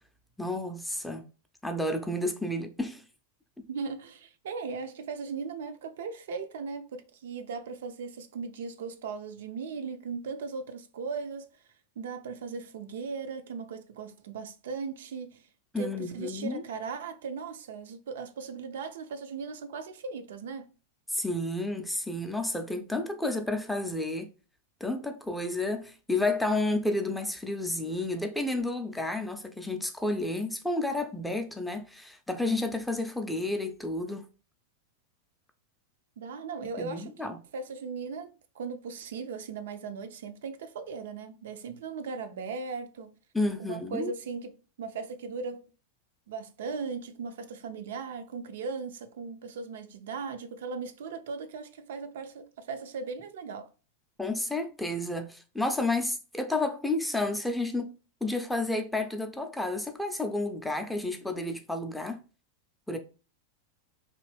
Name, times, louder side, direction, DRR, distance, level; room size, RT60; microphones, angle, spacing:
voice 1, 0.4-1.2 1.6-3.0 3.6-3.7 15.7-16.6 21.1-24.3 24.8-34.2 36.8-37.4 43.3-44.1 54.2-62.2 62.9-63.0, left 2 dB, 5° left, 0.4 m, -31 dB
voice 2, 3.7-11.5 12.0-15.4 15.8-20.7 36.2-43.1 43.6-45.7 46.3-53.7, right 5 dB, 60° right, 0.3 m, -38 dB
2.9 x 2.5 x 3.1 m
figure-of-eight pair, 90°, 0 cm